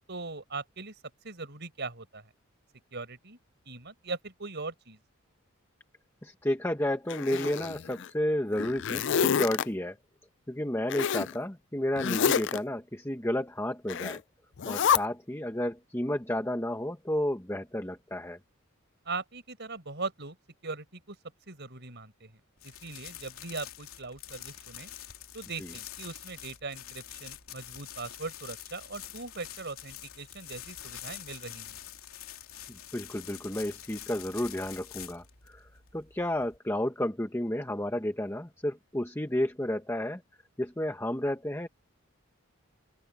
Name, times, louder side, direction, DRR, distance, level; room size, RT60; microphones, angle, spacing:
voice 1, 0.1-0.9 1.2-2.2 2.9-3.4 3.7-5.0 19.1-20.4 20.6-21.2 21.5-22.3 22.6-24.9 25.3-31.8, right 3 dB, 55° right, 5.5 m, -40 dB
voice 2, 6.2-10.0 10.5-14.2 14.7-18.4 25.6-25.7 32.7-40.2 40.6-41.7, left 1 dB, 10° left, 1.3 m, -32 dB
Zipper (clothing), 7.1-8.1 8.5-9.6 10.9-11.3 12.0-12.6 13.9-14.2 14.6-15.0, left 7 dB, 55° left, 0.4 m, -28 dB
sound 1, 22.6-36.6, left 11 dB, 85° left, 3.0 m, -46 dB
open air
head